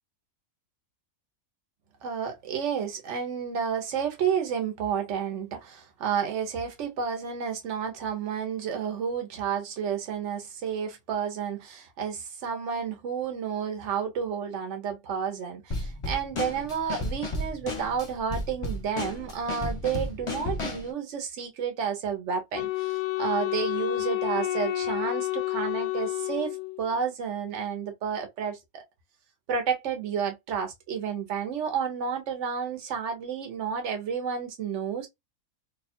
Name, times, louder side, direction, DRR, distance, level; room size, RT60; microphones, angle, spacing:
voice 1, 2.0-28.8 29.5-35.1, right 7 dB, 55° right, 1.2 m, -31 dB
Drum kit / Snare drum, 15.7-20.9, left 2 dB, 25° left, 0.7 m, -33 dB
Wind instrument woodwind instrument, 22.5-27.0, left 16 dB, 75° left, 1.0 m, -30 dB
3.0 x 2.4 x 4.3 m
omnidirectional pair, 1.5 m